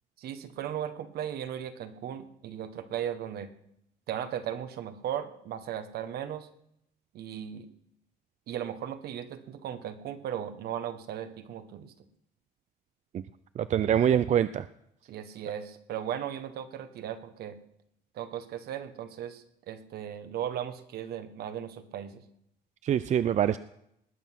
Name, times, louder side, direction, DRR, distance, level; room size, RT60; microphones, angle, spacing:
voice 1, 0.2-3.5 4.1-6.5 7.1-7.7 8.5-11.9 15.1-17.6 18.1-22.2, right 10 dB, 70° right, 10 dB, 1.4 m, -37 dB
voice 2, 13.6-14.7 22.8-23.6, right 9 dB, 45° right, 14 dB, 0.5 m, -24 dB
19.5 x 8.0 x 6.0 m, 0.76 s
cardioid pair, 110°, 17 cm